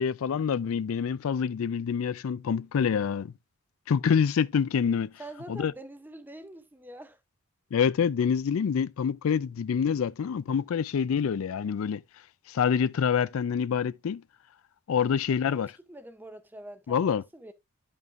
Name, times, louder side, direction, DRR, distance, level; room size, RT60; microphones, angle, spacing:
voice 1, 0.0-3.3 3.9-5.1 5.5-5.7 7.7-12.0 12.5-14.2 14.9-15.7 16.9-17.2, left 7 dB, 70° left, 0.4 m, -26 dB
voice 2, 5.2-7.2 15.5-17.5, right 1 dB, 10° right, 0.6 m, -45 dB
11.0 x 5.3 x 2.4 m
head